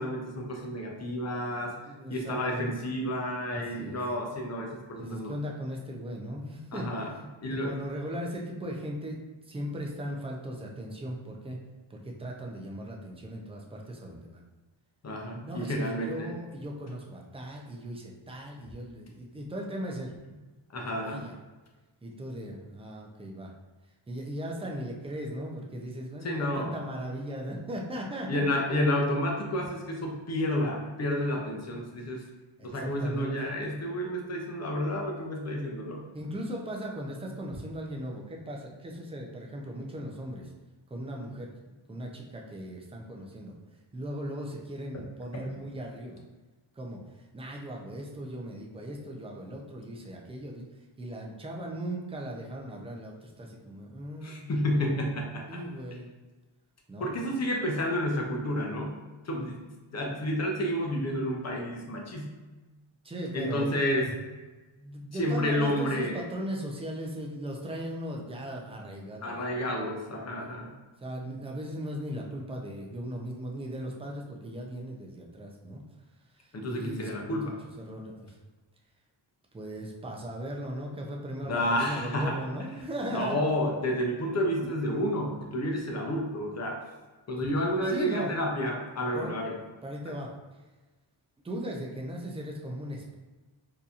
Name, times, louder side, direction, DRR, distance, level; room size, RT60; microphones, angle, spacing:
voice 1, 0.0-1.7 2.1-5.3 6.7-7.1 7.4-7.7 15.0-16.3 20.7-21.2 26.2-26.8 28.3-32.2 32.6-36.0 45.3-45.4 54.2-55.6 57.0-59.6 59.9-62.4 63.3-64.1 65.1-66.2 69.2-70.7 76.5-77.6 81.4-82.4 83.1-86.9 87.3-89.6, equal, 35° left, 0 dB, 0.6 m, -30 dB
voice 2, 1.6-2.7 3.5-4.0 5.0-6.9 7.5-9.2 9.5-11.6 11.9-14.4 15.5-20.1 20.9-21.3 22.0-23.5 24.1-28.6 32.6-33.3 36.1-40.5 40.9-41.5 41.9-43.5 43.9-46.2 46.7-50.7 51.0-54.5 55.5-56.1 56.9-57.1 63.0-63.8 64.7-69.3 70.4-70.5 71.0-75.8 76.4-78.4 79.5-83.4 87.5-88.3 89.1-89.3 89.8-90.3 91.4-93.2, equal, 15° right, -1 dB, 0.4 m, -38 dB
3.9 x 2.8 x 2.4 m, 1.2 s
wide cardioid pair, 145°, 47 cm